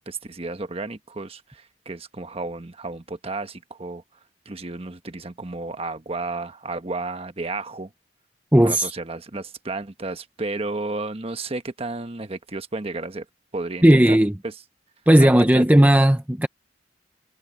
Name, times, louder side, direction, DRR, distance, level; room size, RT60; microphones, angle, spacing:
voice 1, 0.1-4.0 4.4-7.9 8.6-13.2 13.5-14.2 14.4-14.5 15.2-15.7, right 3 dB, 35° right, 1.2 m, -32 dB
voice 2, 8.5-8.9 13.8-14.3 15.1-16.5, right 1 dB, 10° right, 0.8 m, -15 dB
head